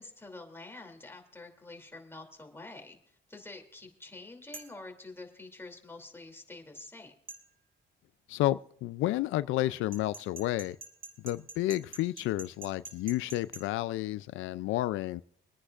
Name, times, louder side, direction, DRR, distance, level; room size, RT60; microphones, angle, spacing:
voice 1, 0.0-7.1, left 2 dB, 10° left, 2.7 m, -47 dB
sound 1, 4.5-4.8 7.3-7.4 9.9-13.6, right 3 dB, 45° right, 3.4 m, -45 dB
voice 2, 8.3-10.8 11.2-15.2, left 15 dB, 90° left, 0.4 m, -31 dB
26.5 x 9.9 x 2.4 m
cardioid pair, 90°, 20 cm